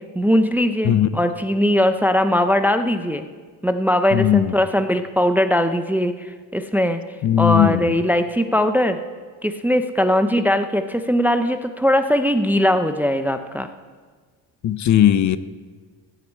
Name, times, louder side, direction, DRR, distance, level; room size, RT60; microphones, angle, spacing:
voice 1, 0.1-3.2 3.6-7.0 7.4-9.0 9.4-13.7, left 1 dB, 5° right, 8 dB, 0.5 m, -20 dB
voice 2, 4.1-4.5 7.2-7.8 14.6-15.4, left 11 dB, 40° left, 14 dB, 0.6 m, -17 dB
15.0 x 7.8 x 8.5 m, 1.5 s
cardioid pair, 130°, 43 cm